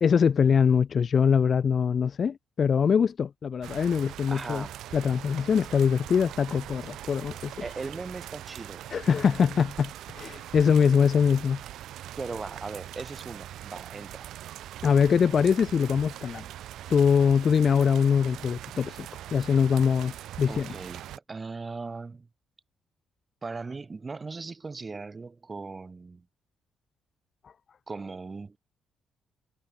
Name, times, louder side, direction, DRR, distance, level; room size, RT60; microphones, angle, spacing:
voice 1, 0.0-4.6 4.9-7.5 8.9-11.6 14.8-16.4 16.9-20.7, left 6 dB, 50° left, 0.5 m, -23 dB
sound 1, 3.6-21.2, right 12 dB, 80° right, 1.5 m, -42 dB
voice 2, 4.3-4.7 7.6-8.9 12.2-14.3 20.5-22.3 23.4-26.3 27.9-28.6, right 4 dB, 30° right, 7.7 m, -38 dB
cardioid pair, 90°, 0 cm